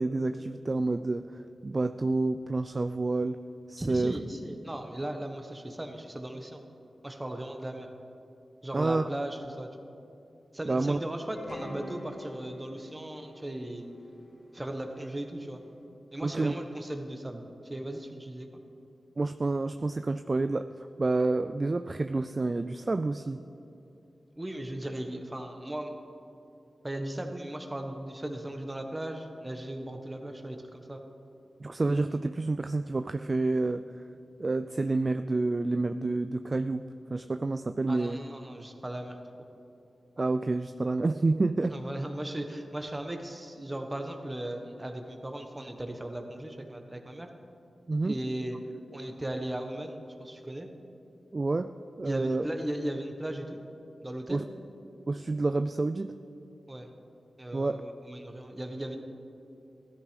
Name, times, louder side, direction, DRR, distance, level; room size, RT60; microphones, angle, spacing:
voice 1, 0.0-3.4 3.7-4.2 8.7-9.0 10.6-11.0 16.2-16.5 19.2-23.4 31.6-34.0 34.4-38.2 40.2-41.8 47.9-48.1 51.3-52.5 54.3-54.4 55.1-56.2 57.5-57.8, right 3 dB, 35° right, 9 dB, 0.3 m, -29 dB
voice 2, 3.8-6.6 7.0-7.9 8.6-9.9 10.5-13.8 14.5-15.6 16.1-18.5 24.3-26.0 26.8-31.0 37.9-39.2 41.7-47.3 48.0-48.6 48.9-50.7 52.1-53.6 54.0-54.4 56.7-56.9 57.4-59.0, right 1 dB, 15° right, 5 dB, 1.3 m, -37 dB
sound 1, 11.3-15.5, left 1 dB, 60° left, 2.7 m, -46 dB
16.0 x 13.0 x 5.2 m, 2.7 s
wide cardioid pair, 95°, 0 cm